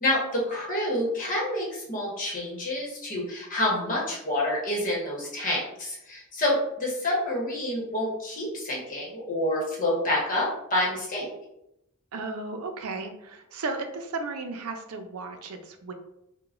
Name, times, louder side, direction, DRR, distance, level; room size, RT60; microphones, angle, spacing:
voice 1, 0.0-11.3, left 1 dB, 40° left, -4 dB, 1.2 m, -28 dB
voice 2, 12.1-15.9, right 3 dB, 90° right, 5 dB, 0.5 m, -34 dB
4.7 x 2.2 x 2.4 m, 0.84 s
head